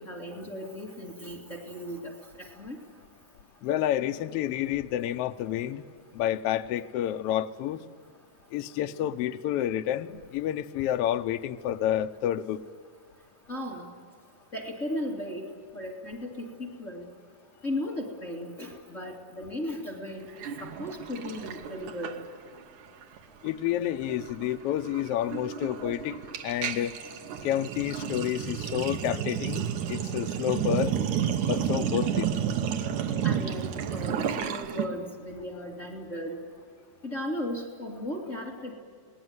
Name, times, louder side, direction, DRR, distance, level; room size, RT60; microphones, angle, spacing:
voice 1, 0.0-2.8 13.5-13.9 14.5-15.5 15.7-17.1 17.6-22.2 33.2-36.4 37.0-38.7, left 1 dB, 25° left, -2 dB, 2.5 m, -36 dB
voice 2, 3.6-5.8 6.1-7.8 8.5-12.6 23.4-26.2 26.4-27.0 27.4-31.0 31.5-32.3, left 11 dB, 70° left, 8 dB, 1.5 m, -29 dB
Sink (filling or washing), 20.4-22.6 22.9-23.2 23.4-34.9, right 9 dB, 80° right, 2.6 m, -31 dB
28.0 x 19.5 x 9.5 m, 2.2 s
omnidirectional pair, 3.4 m